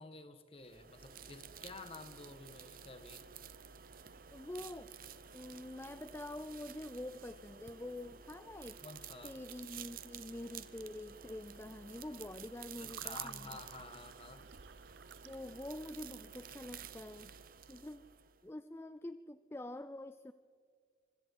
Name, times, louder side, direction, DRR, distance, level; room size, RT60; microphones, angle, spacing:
voice 1, 0.0-3.3 8.8-9.4 12.8-14.4, left 3 dB, 35° left, 8 dB, 1.6 m, -51 dB
sound 1, 0.6-18.4, right 8 dB, 50° right, 0.9 m, -51 dB
voice 2, 4.3-4.9 5.3-8.8 9.2-13.5 15.2-17.3 17.7-18.1 18.4-20.3, left 1 dB, 15° left, 12 dB, 0.4 m, -46 dB
Water / Fill (with liquid), 12.3-17.4, right 7 dB, 80° right, 0.5 m, -56 dB
25.5 x 24.0 x 4.3 m, 2.1 s
head